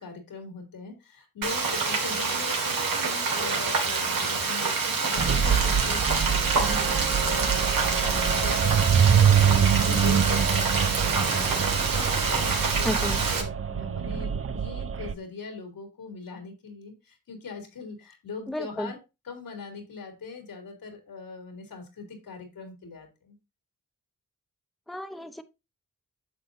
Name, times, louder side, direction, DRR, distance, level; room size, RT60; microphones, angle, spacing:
voice 1, 0.0-7.5 7.8-19.0 19.2-23.4, left 4 dB, 80° left, 3.3 m, -41 dB
Frying (food), 1.4-13.4, right 4 dB, 80° right, 2.1 m, -27 dB
sound 1, 5.2-15.1, right 8 dB, 40° right, 0.8 m, -25 dB
voice 2, 12.8-13.2 18.5-18.9 24.9-25.4, left 1 dB, ahead, 1.0 m, -32 dB
9.6 x 6.6 x 2.7 m
supercardioid pair, 45°, 34 cm